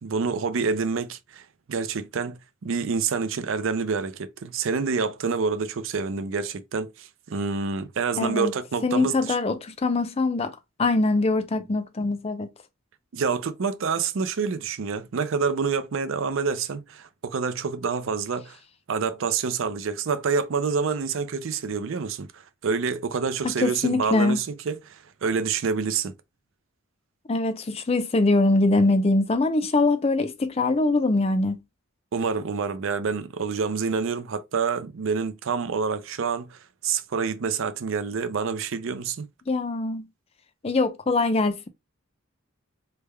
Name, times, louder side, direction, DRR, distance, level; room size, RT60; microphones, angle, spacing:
voice 1, 0.0-9.4 13.1-18.6 18.9-26.1 32.1-39.3, right 5 dB, 65° right, 0.4 m, -27 dB
voice 2, 8.2-8.5 8.8-10.5 10.8-12.5 23.4-24.4 27.3-31.6 39.5-40.1 40.6-41.7, left 2 dB, 25° left, 0.4 m, -23 dB
3.3 x 2.1 x 3.3 m
head